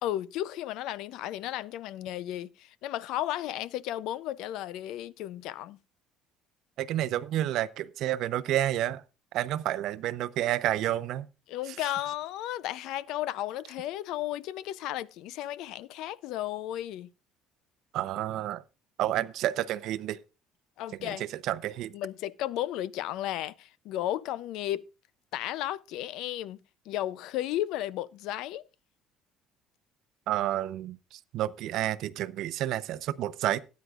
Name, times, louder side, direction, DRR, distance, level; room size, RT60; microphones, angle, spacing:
voice 1, 0.0-5.8 11.5-17.1 20.8-21.2 21.9-24.8 25.3-26.6 26.9-28.6, left 13 dB, 70° left, 0.4 m, -34 dB
voice 2, 6.8-9.0 9.3-11.3 17.9-18.6 19.0-20.2 21.0-21.9 30.3-33.6, right 13 dB, 65° right, 0.6 m, -30 dB
18.0 x 9.2 x 2.4 m
cardioid pair, 140°, 0 cm